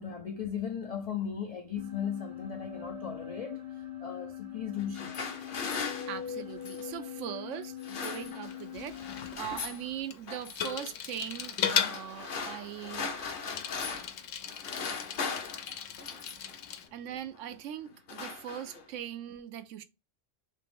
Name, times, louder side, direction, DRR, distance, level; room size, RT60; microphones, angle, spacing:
voice 1, 0.0-5.2 16.7-16.8, left 8 dB, 70° left, 0.3 m, -37 dB
sound 1, 1.7-9.3, left 9 dB, 30° right, 0.7 m, -42 dB
sound 2, 4.7-6.9 7.6-8.7 8.9-9.8 10.3-10.7 11.4-14.2 14.5-16.6 17.3-17.6 17.9-19.0, left 5 dB, 50° left, 0.9 m, -39 dB
voice 2, 5.7-13.1 16.9-19.8, right 10 dB, 85° right, 0.9 m, -41 dB
Bicycle, 8.5-16.9, left 8 dB, 90° left, 1.0 m, -37 dB
3.2 x 3.0 x 3.3 m
omnidirectional pair, 1.3 m